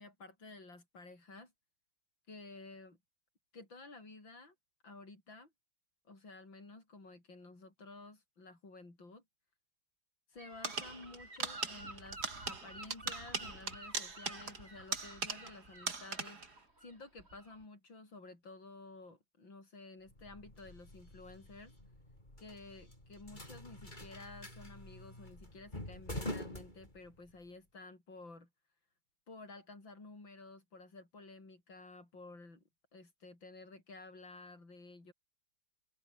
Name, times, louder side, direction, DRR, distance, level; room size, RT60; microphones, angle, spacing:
voice 1, 0.0-1.5 2.3-3.0 3.5-4.6 4.8-5.5 6.1-9.2 10.3-16.4 16.8-21.7 22.4-28.5 29.3-32.6 32.9-35.1, left 3 dB, 70° left, 7.5 m, -53 dB
Gull seagull / Wind, 10.4-17.6, right 2 dB, 30° right, 6.1 m, -52 dB
sound 1, 10.6-15.6 15.9-16.5, right 4 dB, 55° right, 3.6 m, -40 dB
sound 2, 20.1-27.4, left 1 dB, 20° left, 7.1 m, -47 dB
omnidirectional pair, 2.1 m